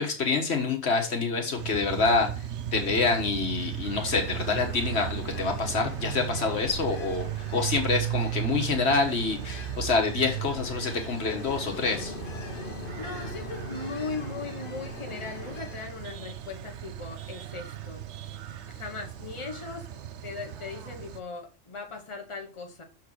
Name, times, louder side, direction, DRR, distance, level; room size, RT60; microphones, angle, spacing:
voice 1, 0.0-2.5 2.7-12.1, left 4 dB, 70° left, 1.6 m, -27 dB
sound 1, 1.6-21.2, right 10 dB, 85° right, 1.0 m, -36 dB
Ocean, 3.8-16.0, left 3 dB, 55° left, 1.1 m, -43 dB
voice 2, 13.0-18.0 18.7-19.9 20.2-22.8, left 4 dB, 30° left, 1.3 m, -38 dB
6.4 x 4.6 x 6.1 m
omnidirectional pair, 1.1 m